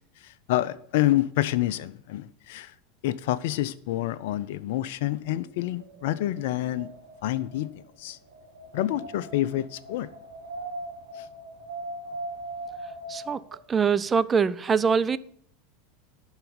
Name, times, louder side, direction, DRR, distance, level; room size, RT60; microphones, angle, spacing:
voice 1, 0.5-2.7 3.0-6.9 7.2-7.7 8.0-8.2 8.7-10.1, left 14 dB, 65° left, 0.4 m, -27 dB
Wind, 5.6-13.6, right 2 dB, 85° right, 1.8 m, -40 dB
voice 2, 13.1-15.2, right 6 dB, 25° right, 0.4 m, -24 dB
11.0 x 4.0 x 7.0 m
hypercardioid pair, 85°, 0 cm